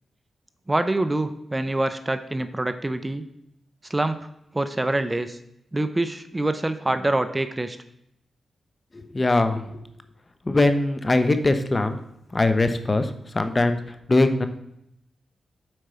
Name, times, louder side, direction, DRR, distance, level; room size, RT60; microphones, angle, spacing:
voice 1, 0.7-3.2 3.9-4.3 4.5-5.4 5.7-7.8, right 2 dB, 20° right, 10 dB, 0.6 m, -25 dB
voice 2, 8.9-9.8 10.5-12.0 12.3-14.5, left 2 dB, 30° left, 9 dB, 0.9 m, -22 dB
7.8 x 4.6 x 5.7 m, 0.78 s
cardioid pair, 50°, 0 cm